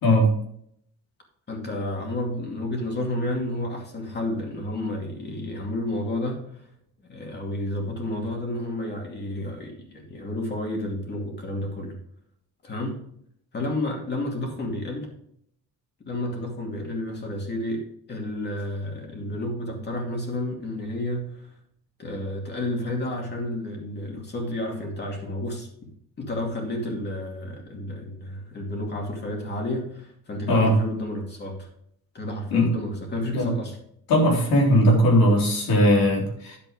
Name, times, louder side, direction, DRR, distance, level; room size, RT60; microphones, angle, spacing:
voice 1, 1.5-6.4 7.1-11.9 12.6-13.0 13.5-15.1 16.1-21.5 22.0-25.7 26.2-31.7 32.1-33.8, left 1 dB, 30° left, 1 dB, 2.5 m, -31 dB
voice 2, 34.1-36.6, equal, 90° left, -2 dB, 3.9 m, -19 dB
10.5 x 7.7 x 3.7 m, 0.68 s
cardioid pair, 170°, 34 cm